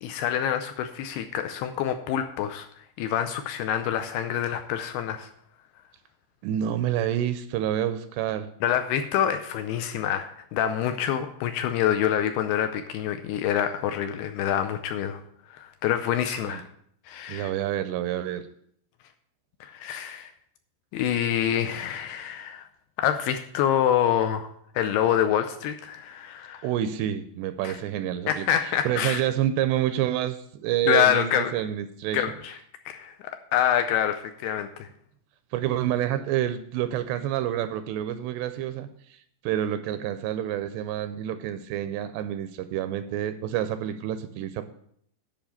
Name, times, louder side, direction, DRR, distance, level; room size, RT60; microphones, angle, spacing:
voice 1, 0.0-2.7 3.0-5.3 8.6-15.2 15.5-16.6 17.1-17.5 19.6-20.3 20.9-22.7 23.0-26.7 27.6-27.7 28.3-29.2 30.9-31.5 32.1-32.6 32.9-33.1 33.5-34.9, left 10 dB, 80° left, 8 dB, 2.4 m, -26 dB
voice 2, 6.4-8.5 16.4-16.6 17.3-18.5 26.6-32.2 35.5-38.9 39.4-44.7, right 11 dB, 85° right, 10 dB, 2.6 m, -28 dB
10.5 x 5.3 x 6.9 m, 0.67 s
omnidirectional pair, 5.2 m